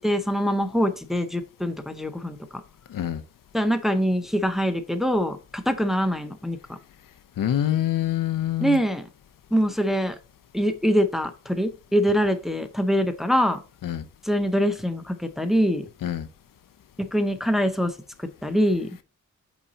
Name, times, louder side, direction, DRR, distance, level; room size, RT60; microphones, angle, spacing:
voice 1, 0.0-2.4 3.5-6.8 8.6-9.1 9.5-10.2 10.5-13.6 14.2-15.9 17.0-17.9 18.4-18.9, equal, ahead, 0.6 m, -24 dB
voice 2, 2.9-3.2 7.4-8.8 13.8-14.0 16.0-16.3, left 11 dB, 90° left, 0.7 m, -25 dB
5.7 x 4.2 x 4.0 m
wide cardioid pair, 135°, 32 cm